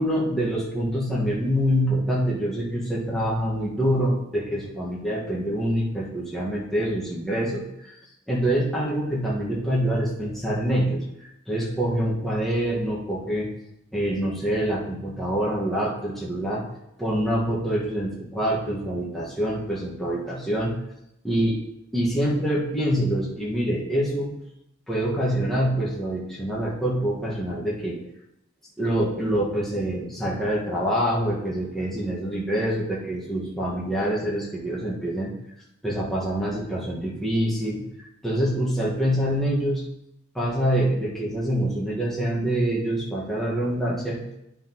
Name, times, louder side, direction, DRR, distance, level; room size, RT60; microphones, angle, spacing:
voice 1, 0.0-8.0 8.3-11.0 11.5-13.5 13.9-16.6 17.0-20.8 21.2-21.6 21.9-24.3 24.9-28.0 28.8-35.3 35.8-39.8 40.3-44.2, equal, ahead, -7 dB, 1.5 m, -25 dB
10.0 x 5.8 x 3.0 m, 0.83 s
head